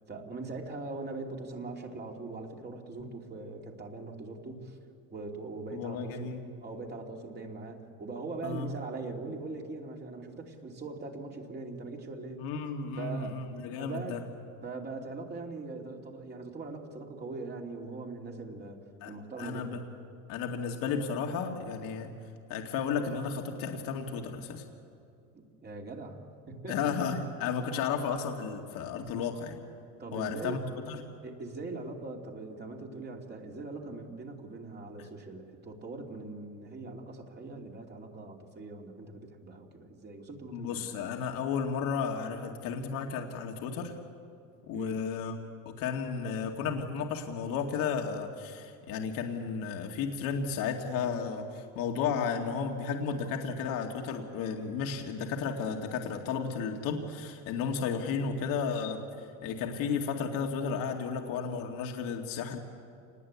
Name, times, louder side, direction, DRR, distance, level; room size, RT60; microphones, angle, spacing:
voice 1, 0.1-4.8 5.1-6.3 6.6-12.4 13.0-13.3 13.8-14.2 14.6-18.8 19.0-19.8 25.3-26.9 30.0-30.6 31.2-40.9 44.7-45.0, right 3 dB, 25° right, 1 dB, 2.9 m, -41 dB
voice 2, 5.7-6.4 8.4-8.8 12.4-14.2 19.0-19.8 20.3-22.1 22.5-24.6 26.7-29.6 30.1-31.0 40.5-43.9 44.7-45.4 45.7-62.6, left 6 dB, 65° left, 2 dB, 2.2 m, -33 dB
27.5 x 20.0 x 8.4 m, 2.5 s
cardioid pair, 135°, 36 cm